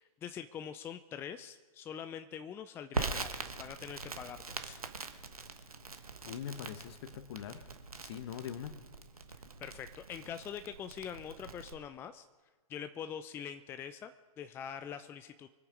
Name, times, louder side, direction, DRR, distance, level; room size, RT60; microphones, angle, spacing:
voice 1, 0.0-4.8 9.6-12.3 12.7-15.5, left 8 dB, 10° left, 9 dB, 0.4 m, -44 dB
Crackle, 2.9-11.7, right 4 dB, 75° right, 1.4 m, -42 dB
voice 2, 6.2-7.6 8.0-8.8, left 9 dB, 45° left, 10 dB, 1.4 m, -42 dB
24.5 x 8.9 x 5.2 m, 1.3 s
figure-of-eight pair, 110°, 19 cm